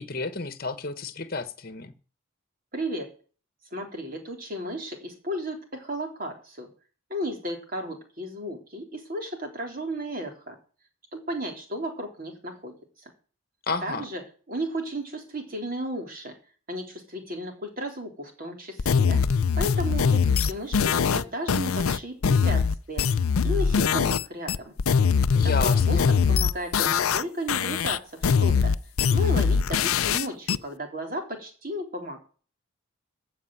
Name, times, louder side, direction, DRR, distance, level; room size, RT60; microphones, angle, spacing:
voice 1, 0.0-1.9 13.7-14.0 25.3-26.1, left 3 dB, 45° left, 12 dB, 1.3 m, -31 dB
voice 2, 2.7-3.1 3.7-6.7 7.1-10.6 11.1-13.1 13.8-14.2 14.5-16.3 16.7-19.2 19.6-23.0 23.4-24.8 25.4-26.0 26.3-28.7 29.1-32.2, equal, 40° right, 3 dB, 3.5 m, -34 dB
sound 1, 18.8-24.2 24.5-27.2 27.5-30.6, left 6 dB, 85° left, 0.5 m, -22 dB
15.0 x 5.3 x 8.9 m, 0.39 s
head